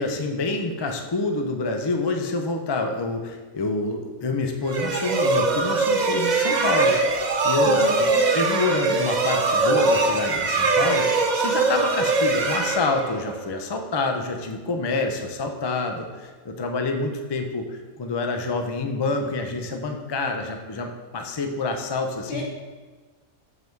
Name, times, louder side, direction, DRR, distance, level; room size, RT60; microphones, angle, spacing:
voice 1, 0.0-7.8 8.3-22.4, left 3 dB, 35° left, 4 dB, 0.4 m, -27 dB
sound 1, 4.7-13.4, right 3 dB, 50° right, 0.5 m, -22 dB
voice 2, 7.6-8.3 22.3-22.4, left 2 dB, 85° left, -6 dB, 2.9 m, -32 dB
8.0 x 5.3 x 4.6 m, 1.4 s
omnidirectional pair, 1.5 m